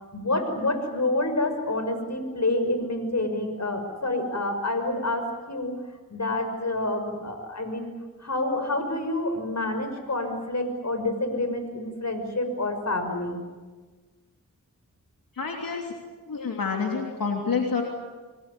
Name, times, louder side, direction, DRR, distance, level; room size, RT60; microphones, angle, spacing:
voice 1, 0.1-5.7 6.1-7.9 8.2-13.4, left 2 dB, 55° left, 6 dB, 6.2 m, -28 dB
voice 2, 15.3-15.9 16.3-17.8, left 5 dB, 90° left, 1 dB, 3.3 m, -28 dB
27.0 x 20.5 x 10.0 m, 1.3 s
cardioid pair, 50°, 33 cm